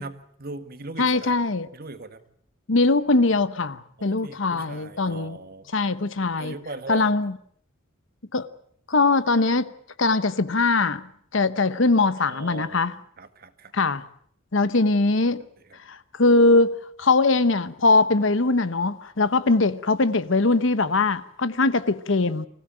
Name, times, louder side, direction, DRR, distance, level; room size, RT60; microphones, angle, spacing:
voice 1, 0.0-1.4 1.7-2.2 4.0-5.7 6.4-7.1 11.8-12.8 13.2-13.7 15.6-15.8, right 2 dB, 50° right, 1.8 m, -39 dB
voice 2, 1.0-1.7 2.7-5.4 5.7-6.5 6.9-7.3 8.3-8.5 8.9-9.7 10.0-11.0 11.3-12.9 13.7-14.0 14.5-15.4 15.9-22.5, left 3 dB, 65° left, 1.0 m, -21 dB
25.0 x 16.0 x 8.8 m
head